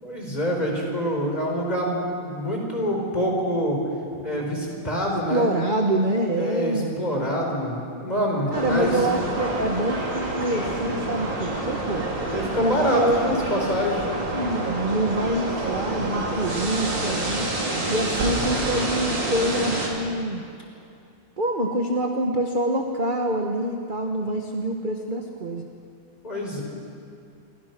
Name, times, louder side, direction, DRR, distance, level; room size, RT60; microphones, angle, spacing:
voice 1, 0.0-3.8 4.2-5.5 6.4-9.0 12.3-14.0 26.2-26.6, equal, 20° left, -1 dB, 4.9 m, -26 dB
voice 2, 5.3-7.1 8.5-12.0 12.6-13.2 14.3-17.5 17.9-20.4 21.4-25.7, right 1 dB, 25° right, 3 dB, 1.3 m, -26 dB
sound 1, 8.5-19.9, right 2 dB, 60° right, 4.2 m, -28 dB
27.5 x 23.5 x 6.1 m, 2.5 s
omnidirectional pair, 2.3 m